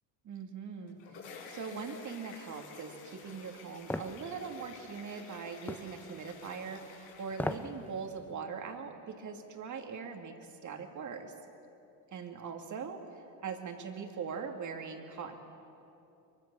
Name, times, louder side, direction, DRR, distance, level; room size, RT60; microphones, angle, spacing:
voice 1, 0.2-6.8 7.2-10.4 10.6-11.3 12.1-15.3, right 5 dB, 40° right, 4 dB, 2.6 m, -41 dB
sound 1, 0.7-8.1, left 5 dB, 65° left, 5.1 m, -51 dB
sound 2, 3.9-4.2 5.7-5.9 7.3-7.7 8.1-8.2, left 1 dB, 5° left, 0.9 m, -35 dB
23.5 x 23.0 x 7.1 m, 2.9 s
supercardioid pair, 105°, 47 cm